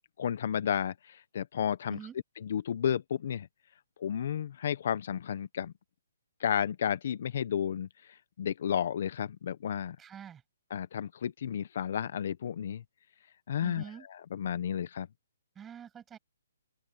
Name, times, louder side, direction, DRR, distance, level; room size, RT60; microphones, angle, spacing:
voice 1, 0.2-2.0 2.4-3.5 4.0-5.7 6.4-10.0 10.7-12.8 13.5-13.8 14.1-15.1, left 9 dB, 55° left, 1.0 m, -32 dB
voice 2, 10.0-10.4 13.6-14.1 15.6-16.2, right 8 dB, 10° right, 7.4 m, -46 dB
open air
hypercardioid pair, 155°, 0 cm